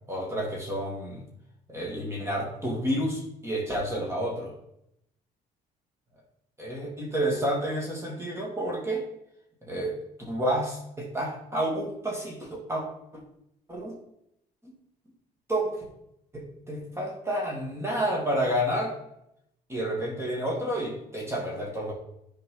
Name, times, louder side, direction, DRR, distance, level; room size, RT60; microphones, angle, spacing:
voice 1, 0.1-1.2 1.7-4.5 6.6-9.1 9.7-9.9 10.3-12.8 13.7-13.9 14.6-14.7 15.5-15.8 16.3-19.0 19.7-21.9, right 1 dB, 15° right, -2 dB, 2.4 m, -30 dB
11.0 x 4.9 x 4.0 m, 0.78 s
cardioid pair, 110°, 17 cm